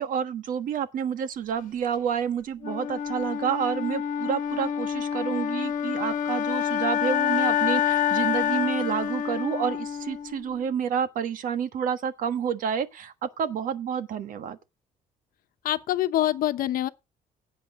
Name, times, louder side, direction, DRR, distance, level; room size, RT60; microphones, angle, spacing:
voice 1, 0.0-14.6, right 8 dB, 65° right, 1.4 m, -29 dB
Wind instrument woodwind instrument, 2.6-10.6, left 9 dB, 60° left, 1.4 m, -27 dB
voice 2, 15.6-16.9, left 13 dB, 75° left, 1.0 m, -25 dB
16.5 x 8.3 x 3.7 m
cardioid pair, 150°, 15 cm